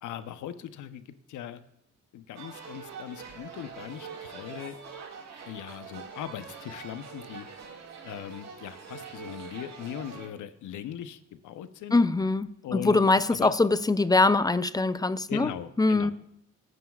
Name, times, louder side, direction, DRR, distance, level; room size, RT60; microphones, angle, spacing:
voice 1, 0.0-1.6 2.1-4.8 5.5-7.5 8.0-12.0 12.6-13.0 13.3-13.5 15.3-16.1, left 10 dB, 80° left, 0.9 m, -39 dB
sound 1, 2.4-10.3, right 6 dB, 60° right, 2.2 m, -44 dB
voice 2, 11.9-15.5 15.8-16.1, left 3 dB, 15° left, 0.5 m, -23 dB
25.0 x 9.4 x 2.4 m
cardioid pair, 90°, 30 cm